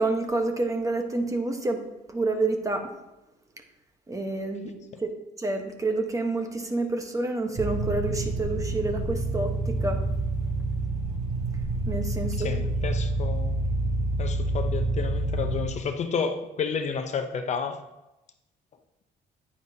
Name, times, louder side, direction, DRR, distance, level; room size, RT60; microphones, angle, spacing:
voice 1, 0.0-2.9 4.1-5.1 5.4-10.0 11.9-12.5, right 2 dB, 20° right, 5 dB, 1.1 m, -28 dB
sound 1, 7.6-15.6, right 2 dB, 45° right, 3.2 m, -28 dB
voice 2, 12.4-13.7 14.2-17.8, left 5 dB, 45° left, 6 dB, 0.7 m, -31 dB
9.8 x 9.2 x 2.8 m, 0.97 s
cardioid pair, 110°, 17 cm